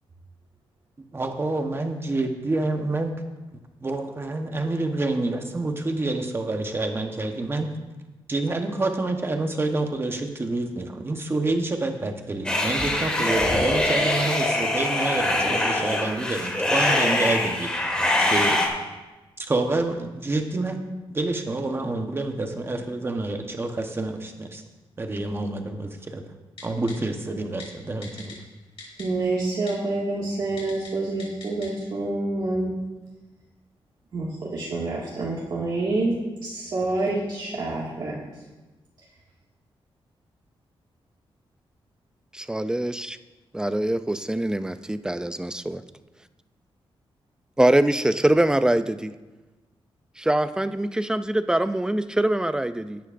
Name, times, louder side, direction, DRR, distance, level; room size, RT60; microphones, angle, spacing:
voice 1, 1.1-3.1 3.8-7.8 8.3-17.7 18.2-18.6 19.4-20.8 21.1-24.6 25.0-26.2 26.6-28.4, right 2 dB, 25° right, 4 dB, 1.0 m, -28 dB
sound 1, 12.4-18.7, left 1 dB, 10° left, 1.8 m, -23 dB
Typing, 26.6-26.9 27.6-27.7 28.0-28.3 28.8-29.0 29.7-29.8 30.6-30.9 31.2-31.7 32.0-32.1, left 4 dB, 70° left, 3.6 m, -41 dB
voice 2, 29.0-32.8 34.1-38.2, right 2 dB, 50° right, -5 dB, 1.9 m, -27 dB
voice 3, 42.3-43.2 43.5-45.8 47.6-49.1 50.2-53.0, right 1 dB, 5° right, 11 dB, 0.4 m, -23 dB
16.5 x 10.5 x 2.5 m, 1.1 s
wide cardioid pair, 155°, 10 cm